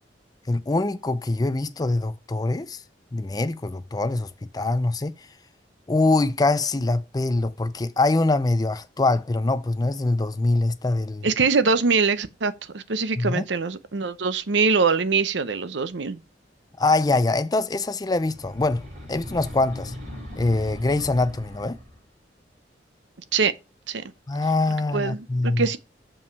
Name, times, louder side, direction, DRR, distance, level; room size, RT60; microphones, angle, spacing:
voice 1, 0.5-2.8 3.1-5.3 5.9-11.3 13.2-13.5 16.8-19.9 20.4-21.8 24.3-25.7, left 2 dB, 20° left, 0.4 m, -24 dB
voice 2, 11.2-16.2 23.3-23.5 23.9-24.0 24.9-25.8, right 4 dB, 75° right, 0.7 m, -23 dB
sound 1, 18.1-22.1, left 1 dB, 40° right, 4.2 m, -39 dB
7.1 x 5.5 x 4.7 m
head